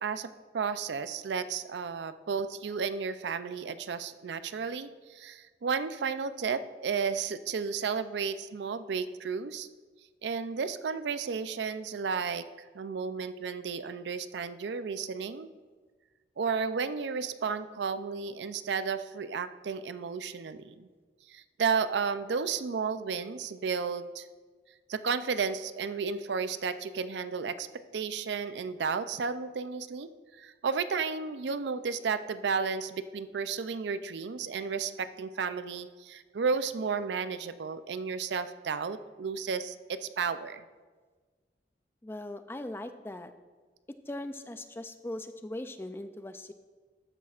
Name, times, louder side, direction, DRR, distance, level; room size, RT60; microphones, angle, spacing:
voice 1, 0.0-9.7 10.2-12.5 12.7-15.5 16.4-20.9 21.3-24.3 24.9-30.1 30.4-40.6, right 5 dB, 80° right, 12 dB, 0.4 m, -33 dB
voice 2, 42.0-43.3 44.1-46.5, left 1 dB, 15° left, 10 dB, 0.3 m, -40 dB
13.5 x 10.0 x 2.4 m, 1.4 s
head